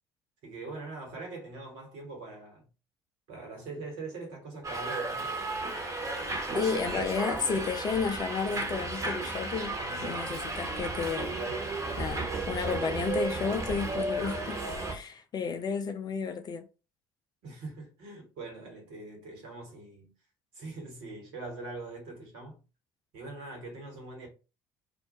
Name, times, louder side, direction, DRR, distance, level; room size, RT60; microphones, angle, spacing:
voice 1, 0.4-2.7 3.3-5.3 17.4-20.1 20.5-22.6 23.1-24.3, right 3 dB, 65° right, 1.3 m, -42 dB
Subway metro underground, 4.6-14.9, right 2 dB, 30° right, 1.0 m, -33 dB
voice 2, 6.5-11.4 12.0-14.6 14.9-16.6, left 5 dB, 35° left, 0.5 m, -32 dB
2.5 x 2.1 x 2.8 m
figure-of-eight pair, 55°, 12 cm